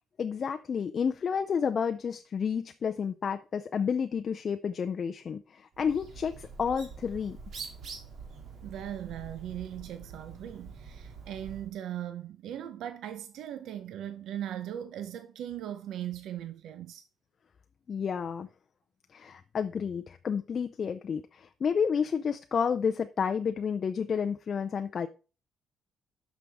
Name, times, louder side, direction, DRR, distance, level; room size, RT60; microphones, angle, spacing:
voice 1, 0.2-7.4 17.9-18.5 19.1-25.1, left 6 dB, 35° left, 0.4 m, -30 dB
Bird, 5.7-11.7, right 5 dB, 50° right, 2.4 m, -45 dB
voice 2, 8.6-17.0, right 11 dB, 75° right, 0.7 m, -39 dB
11.5 x 6.1 x 3.5 m
cardioid pair, 175°, 0 cm